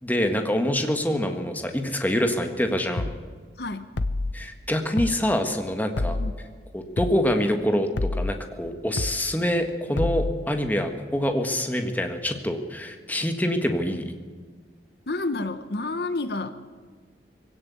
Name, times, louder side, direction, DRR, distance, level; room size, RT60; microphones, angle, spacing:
voice 1, 0.0-3.1 4.3-6.2 6.7-14.0, equal, 10° left, 5 dB, 1.6 m, -25 dB
sound 1, 3.0-3.2 4.0-4.3 5.0-5.2 6.0-6.3 7.0-7.2 8.0-8.3 9.0-9.2 10.0-10.3, left 2 dB, 90° left, 0.8 m, -27 dB
voice 2, 3.6-4.0 6.2-6.3 15.1-16.5, left 2 dB, 60° left, 11 dB, 1.0 m, -29 dB
21.0 x 17.0 x 8.3 m, 1.5 s
head